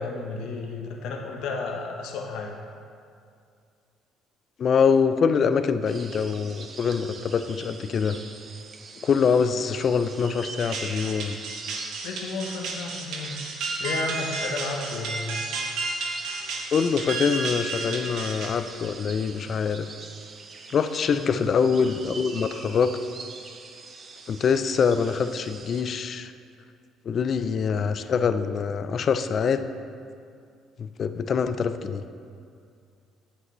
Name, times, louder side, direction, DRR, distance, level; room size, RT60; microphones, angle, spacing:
voice 1, 0.0-2.5 12.0-13.4 13.8-15.4 21.2-21.4, left 3 dB, 75° left, 2 dB, 0.9 m, -32 dB
voice 2, 4.6-8.2 9.0-11.4 16.7-19.9 20.7-22.9 24.3-26.3 27.1-29.7 30.8-32.0, left 6 dB, 45° left, 10 dB, 0.4 m, -24 dB
sound 1, 5.8-25.8, right 4 dB, 40° right, 0.7 m, -43 dB
sound 2, 10.6-18.9, right 3 dB, 70° right, 1.0 m, -32 dB
8.3 x 8.0 x 3.1 m, 2.3 s
cardioid pair, 105°, 0 cm